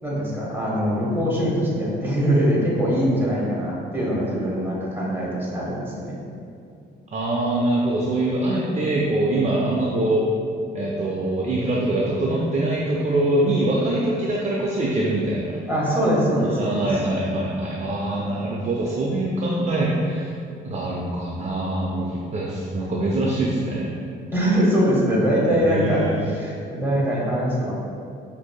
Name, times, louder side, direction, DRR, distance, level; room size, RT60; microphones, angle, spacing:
voice 1, 0.0-6.2 15.7-16.8 24.3-27.7, equal, 10° right, -6 dB, 1.3 m, -22 dB
voice 2, 7.1-10.3 10.7-15.6 16.4-20.3 20.6-24.0 25.5-26.2, right 1 dB, 35° right, -4 dB, 0.5 m, -24 dB
5.9 x 2.7 x 2.3 m, 2.4 s
cardioid pair, 90°, 20 cm